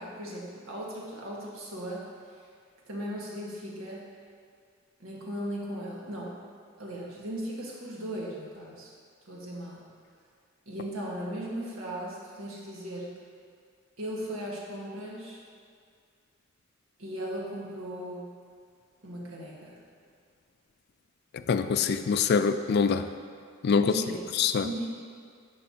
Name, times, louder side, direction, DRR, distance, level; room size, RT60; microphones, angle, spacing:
voice 1, 0.0-2.1 2.9-4.0 5.0-6.4 6.8-8.9 9.3-9.8 10.6-13.1 14.0-15.4 17.0-18.3 19.0-19.8 23.7-24.2 24.6-24.9, equal, 85° right, -4 dB, 1.5 m, -37 dB
voice 2, 21.5-23.0 23.6-23.9 24.4-24.7, left 6 dB, 50° left, 10 dB, 0.3 m, -24 dB
9.9 x 5.6 x 2.8 m, 2.2 s
head